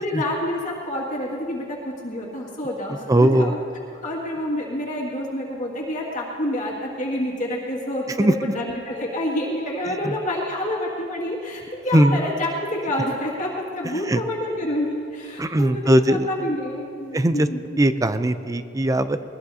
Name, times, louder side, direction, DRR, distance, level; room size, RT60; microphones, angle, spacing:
voice 1, 0.0-3.6 4.0-17.4 18.0-18.1, left 1 dB, 40° left, -4 dB, 2.2 m, -28 dB
voice 2, 3.1-3.5 8.2-8.5 9.9-10.2 11.9-12.2 14.1-14.2 15.4-16.3 17.1-17.5 17.8-19.2, right 1 dB, 15° right, 11 dB, 0.5 m, -19 dB
21.0 x 20.5 x 2.8 m, 2.7 s
head